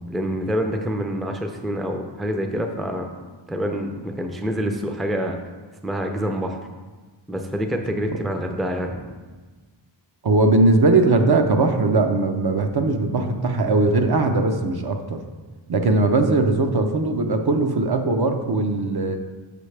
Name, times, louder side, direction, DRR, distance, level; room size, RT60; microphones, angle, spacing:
voice 1, 0.1-3.1 3.5-5.4 5.8-6.6 7.3-9.1, equal, ahead, 4 dB, 0.5 m, -26 dB
voice 2, 10.2-15.2 15.7-19.2, right 3 dB, 50° right, 5 dB, 0.6 m, -19 dB
6.7 x 5.5 x 3.3 m, 1.3 s
wide cardioid pair, 90°, 48 cm